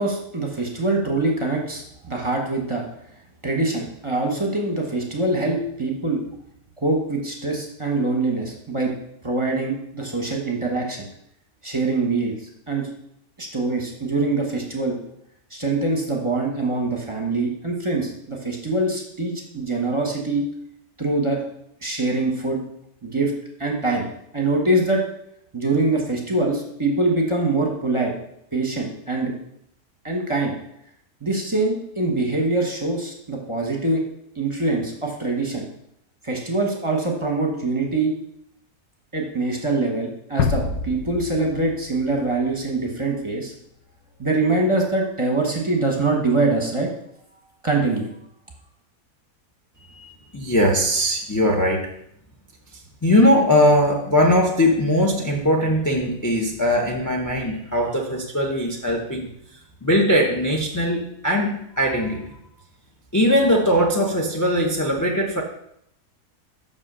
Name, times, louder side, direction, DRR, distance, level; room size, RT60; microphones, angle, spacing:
voice 1, 0.0-2.8 3.4-6.2 6.8-8.9 9.2-11.1 11.6-12.9 13.4-15.0 15.5-20.4 21.0-21.4 21.8-22.6 23.0-23.3 23.6-24.1 24.3-25.0 25.5-28.1 28.5-29.3 30.0-30.5 31.2-34.0 34.3-35.7 36.2-38.1 39.1-43.5 44.2-46.9 47.6-48.1, right 2 dB, 20° right, 0 dB, 1.1 m, -24 dB
sound 1, 40.4-43.2, left 6 dB, 75° left, 1.0 m, -28 dB
voice 2, 49.8-51.9 52.7-62.4 63.1-65.4, equal, 20° left, 1 dB, 0.5 m, -20 dB
6.1 x 5.3 x 6.2 m, 0.74 s
omnidirectional pair, 1.6 m